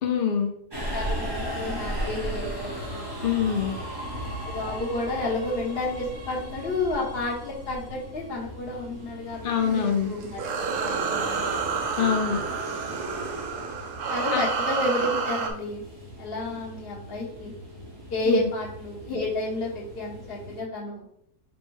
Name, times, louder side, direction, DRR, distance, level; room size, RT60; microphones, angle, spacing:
voice 1, 0.0-0.5 3.2-3.7 9.4-10.1 12.0-12.4 14.3-14.4 18.3-18.5, left 7 dB, 70° left, 2 dB, 0.5 m, -24 dB
Subway metro underground, 0.7-20.6, right 1 dB, 20° right, 0.8 m, -37 dB
voice 2, 0.9-3.1 4.4-11.6 14.1-15.8 16.2-17.5 18.1-21.1, left 2 dB, 45° left, -3 dB, 1.1 m, -31 dB
sound 1, 9.5-15.5, right 5 dB, 85° right, 1.2 m, -29 dB
4.3 x 2.1 x 4.6 m, 0.72 s
omnidirectional pair, 1.7 m